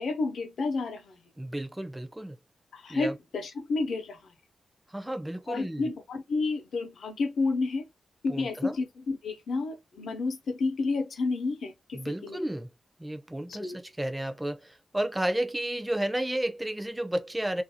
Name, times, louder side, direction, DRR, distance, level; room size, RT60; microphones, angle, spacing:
voice 1, 0.0-1.2 2.7-4.3 5.5-7.8 8.2-12.5 13.5-13.8, left 3 dB, 75° left, 0.7 m, -31 dB
voice 2, 1.4-2.4 2.9-3.2 4.9-5.9 8.3-8.8 11.9-12.7 13.0-17.6, right 1 dB, 10° right, 0.4 m, -32 dB
2.5 x 2.2 x 2.7 m
wide cardioid pair, 155°, 0 cm